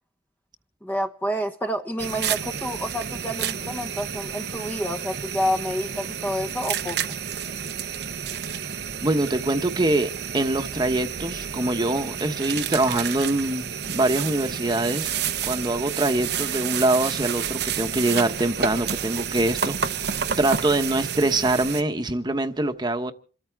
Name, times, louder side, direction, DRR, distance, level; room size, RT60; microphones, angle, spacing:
voice 1, 0.8-7.2, equal, 10° left, 0.9 m, -29 dB
sound 1, 2.0-21.8, right 7 dB, 60° right, 0.8 m, -30 dB
voice 2, 9.0-15.1 15.4-20.0 20.4-23.1, right 2 dB, 25° right, 1.1 m, -24 dB
27.5 x 13.5 x 3.6 m
head